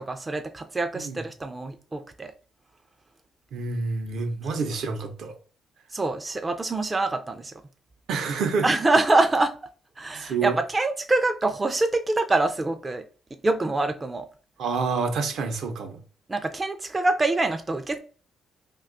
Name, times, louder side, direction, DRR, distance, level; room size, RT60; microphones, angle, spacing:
voice 1, 0.0-2.3 5.9-7.6 8.6-9.6 10.0-13.0 13.4-14.3 16.3-18.0, right 2 dB, 25° right, 0.3 m, -25 dB
voice 2, 3.5-5.4 8.1-8.7 10.1-10.6 14.6-16.0, right 4 dB, 75° right, 0.6 m, -28 dB
2.6 x 2.3 x 3.7 m
cardioid pair, 90°, 0 cm